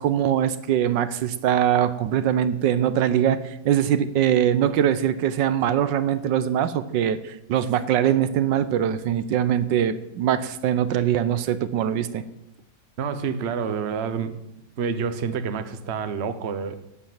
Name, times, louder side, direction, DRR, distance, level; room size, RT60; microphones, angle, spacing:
voice 1, 0.0-12.2, right 10 dB, 75° right, 13 dB, 1.4 m, -22 dB
voice 2, 13.0-14.4 14.8-16.7, right 6 dB, 45° right, 10 dB, 0.9 m, -28 dB
12.0 x 8.4 x 7.3 m, 0.86 s
omnidirectional pair, 2.0 m